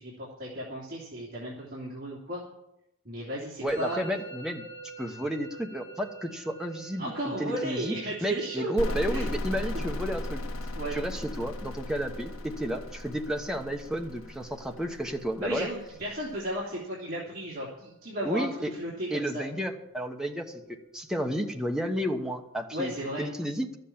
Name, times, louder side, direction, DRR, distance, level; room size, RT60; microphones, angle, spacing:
voice 1, 0.0-2.4 3.0-4.0 7.0-9.3 10.7-11.0 15.4-19.4 22.7-23.3, right 1 dB, 45° right, -6 dB, 2.9 m, -35 dB
voice 2, 3.6-4.6 5.0-7.9 8.2-10.4 10.9-15.7 18.2-18.7 19.1-22.9 23.2-23.8, equal, 5° right, 3 dB, 1.1 m, -32 dB
Musical instrument, 3.7-22.6, right 4 dB, 25° left, 1.0 m, -50 dB
sound 1, 8.8-16.3, left 1 dB, 85° left, 1.2 m, -36 dB
12.5 x 7.8 x 8.7 m, 0.84 s
head